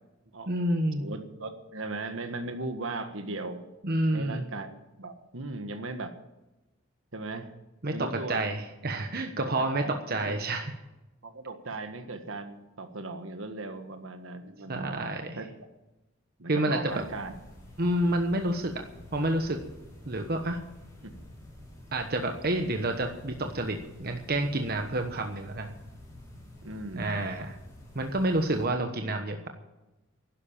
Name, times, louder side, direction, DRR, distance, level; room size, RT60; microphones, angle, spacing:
voice 1, 0.5-1.0 3.8-4.5 7.8-7.9 8.3-10.7 14.7-15.4 16.5-17.0 17.8-18.8 19.1-19.6 20.1-20.6 21.9-25.7 26.9-27.6 27.9-29.5, right 1 dB, 50° right, 5 dB, 1.2 m, -29 dB
voice 2, 1.0-3.6 4.1-6.1 7.1-7.5 7.9-8.5 9.4-10.0 10.3-10.4 11.2-15.0 15.4-15.5 16.4-17.3 21.0-21.1 26.6-27.3, right 2 dB, 70° right, 7 dB, 1.6 m, -37 dB
sound 1, 16.9-28.7, left 1 dB, 15° left, 6.2 m, -49 dB
12.0 x 11.0 x 8.9 m, 1.0 s
head